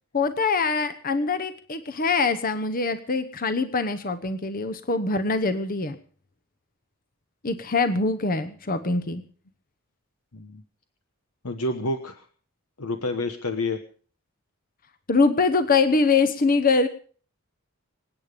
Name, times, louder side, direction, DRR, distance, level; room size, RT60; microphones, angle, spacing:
voice 1, 0.1-6.0 7.4-9.2 15.1-16.9, left 4 dB, 40° left, 10 dB, 0.9 m, -23 dB
voice 2, 11.4-12.3 12.8-13.8, left 2 dB, 85° left, 8 dB, 1.2 m, -29 dB
26.5 x 9.0 x 5.1 m, 0.42 s
head